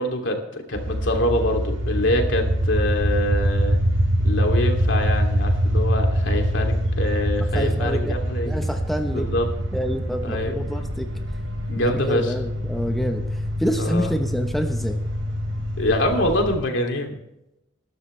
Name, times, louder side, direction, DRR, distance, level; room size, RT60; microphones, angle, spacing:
voice 1, 0.0-3.8 4.2-8.5 9.1-9.5 10.2-10.6 11.7-12.3 13.8-14.1 15.8-17.2, left 1 dB, 70° left, 3 dB, 2.9 m, -25 dB
sound 1, 0.7-16.6, equal, 80° right, 5.3 m, -24 dB
voice 2, 7.5-8.2 8.5-9.3 9.7-11.1 11.8-15.0, equal, ahead, 4 dB, 1.1 m, -27 dB
20.5 x 12.5 x 3.4 m, 0.87 s
head